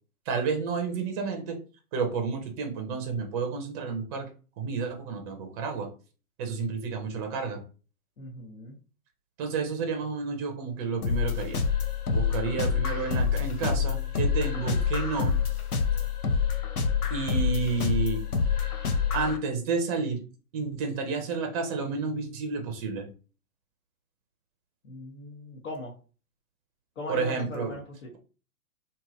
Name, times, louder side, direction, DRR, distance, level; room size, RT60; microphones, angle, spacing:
voice 1, 0.3-1.6 1.9-4.3 4.6-5.9 6.4-7.6 9.4-11.6 12.1-15.3 17.1-18.2 19.1-20.2 20.5-23.1 27.1-27.7, right 4 dB, 25° right, 4 dB, 0.7 m, -30 dB
voice 2, 8.2-8.7 24.8-25.9 27.0-28.2, left 2 dB, 60° left, -4 dB, 1.1 m, -39 dB
sound 1, 11.0-19.4, left 6 dB, 80° left, 0.8 m, -27 dB
2.9 x 2.8 x 2.4 m, 0.36 s
figure-of-eight pair, 115°, 45 cm